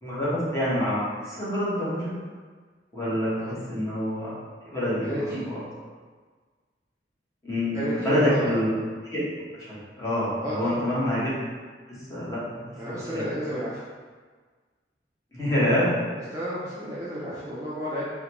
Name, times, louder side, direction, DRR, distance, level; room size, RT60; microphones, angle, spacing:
voice 1, 0.0-2.1 2.9-4.3 4.6-5.1 5.5-5.6 7.4-8.7 9.1-9.2 9.6-9.7 10.0-11.3 12.1-13.2 15.3-15.9, equal, 20° left, -10 dB, 1.0 m, -26 dB
voice 2, 5.0-5.4 7.7-8.4 10.4-10.9 12.8-13.8 16.3-18.1, equal, 20° right, -9 dB, 0.5 m, -32 dB
3.6 x 2.2 x 2.9 m, 1.5 s
head